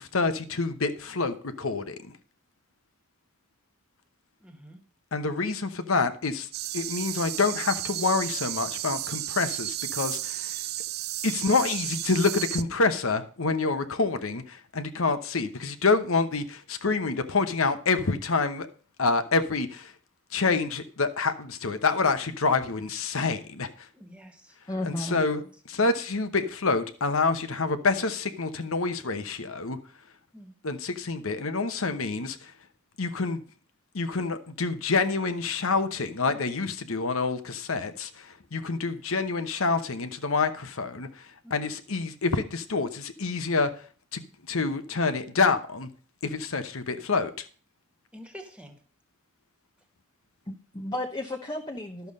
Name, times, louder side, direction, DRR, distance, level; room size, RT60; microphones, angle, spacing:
voice 1, 0.0-2.0 5.1-6.5 6.7-10.6 11.2-18.7 19.0-19.9 20.3-23.7 24.9-25.4 25.7-29.8 30.6-32.5 33.0-33.4 33.9-41.1 41.5-43.7 44.1-44.2 44.5-45.9 46.2-47.5, left 4 dB, 65° left, 1.0 m, -27 dB
voice 2, 4.4-4.8 23.9-24.6 30.3-30.5 38.8-38.9 41.4-41.6 48.1-48.8, equal, 5° right, 1.7 m, -47 dB
sound 1, 6.5-12.6, right 14 dB, 45° right, 0.5 m, -33 dB
voice 3, 24.7-25.2 50.5-52.1, left 1 dB, 20° left, 0.9 m, -33 dB
12.0 x 7.0 x 5.3 m
head